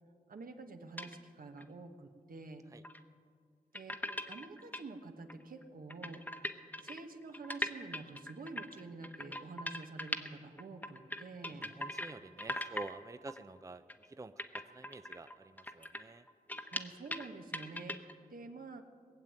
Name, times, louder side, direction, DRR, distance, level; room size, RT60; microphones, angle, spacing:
voice 1, 0.3-2.6 3.7-4.0 4.3-6.2 6.8-11.6 16.7-18.0 18.3-18.8, right 3 dB, 75° right, 5 dB, 1.2 m, -48 dB
sound 1, 1.0-1.2 1.6-1.7 2.8-3.0 3.7-4.8 5.3-5.4 5.6-5.7 5.9-10.3 10.6-12.1 12.4-12.9 13.3-13.4 13.9-14.1 14.4-17.3 17.5-18.1, left 1 dB, 10° left, 1.0 m, -40 dB
voice 2, 11.5-16.3, right 2 dB, 20° right, 11 dB, 0.5 m, -49 dB
20.0 x 7.3 x 8.9 m, 2.1 s
cardioid pair, 60°, 15 cm